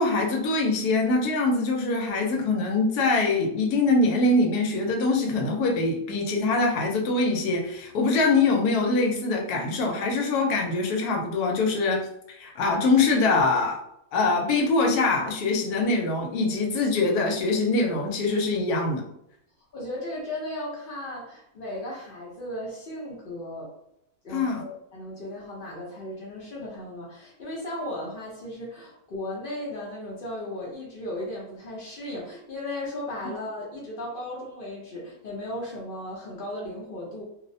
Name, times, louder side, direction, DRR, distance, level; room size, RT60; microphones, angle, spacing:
voice 1, 0.0-13.8 14.1-19.0 24.3-24.6, left 3 dB, 85° left, 1 dB, 1.1 m, -23 dB
voice 2, 19.7-23.7 24.2-37.2, left 1 dB, 60° left, -4 dB, 0.5 m, -36 dB
2.7 x 2.0 x 2.6 m, 0.76 s
omnidirectional pair, 1.6 m